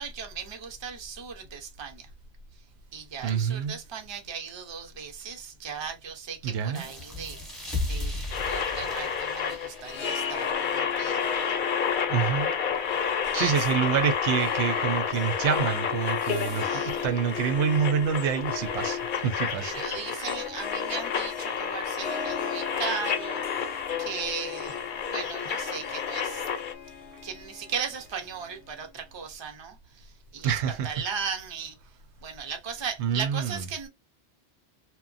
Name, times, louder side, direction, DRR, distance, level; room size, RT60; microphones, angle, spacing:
voice 1, 0.0-2.1 2.9-8.1 8.4-11.5 13.3-13.6 16.3-17.0 19.6-23.4 23.7-26.5 27.2-31.8 32.2-33.9, right 6 dB, 30° right, 0.5 m, -37 dB
voice 2, 3.2-3.8 6.4-6.8 12.1-12.5 13.4-19.8 20.1-20.3 30.4-30.9 33.0-33.6, right 7 dB, 85° right, 0.9 m, -27 dB
sound 1, 6.7-12.0, left 2 dB, ahead, 0.8 m, -37 dB
sound 2, 8.3-26.7, left 7 dB, 55° left, 0.6 m, -30 dB
Harp, 9.7-29.1, left 7 dB, 85° left, 0.9 m, -39 dB
2.9 x 2.1 x 2.5 m
omnidirectional pair, 1.1 m